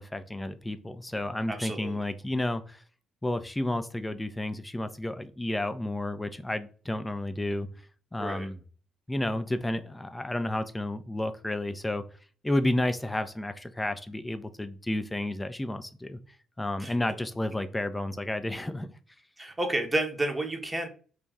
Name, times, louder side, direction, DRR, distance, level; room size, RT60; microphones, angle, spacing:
voice 1, 0.0-2.8 3.2-7.7 8.1-8.6 9.1-12.0 12.4-16.2 16.6-18.9, left 1 dB, 15° left, 10 dB, 0.4 m, -31 dB
voice 2, 1.2-2.0 8.2-8.5 16.8-17.0 19.4-20.9, right 1 dB, 15° right, 4 dB, 0.8 m, -31 dB
3.0 x 2.5 x 3.4 m, 0.39 s
figure-of-eight pair, 45°, 0 cm